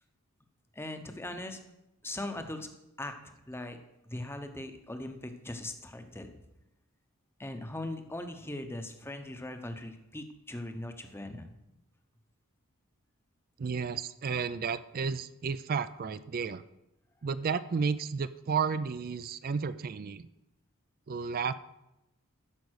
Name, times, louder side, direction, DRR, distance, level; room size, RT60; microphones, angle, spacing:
voice 1, 0.7-1.6 2.0-2.7 3.0-3.8 4.1-6.4 7.4-11.5, left 1 dB, 10° left, 7 dB, 0.8 m, -40 dB
voice 2, 13.6-16.6 17.2-20.3 21.1-21.5, right 5 dB, 40° right, 13 dB, 0.4 m, -32 dB
13.5 x 5.3 x 6.4 m, 0.90 s
head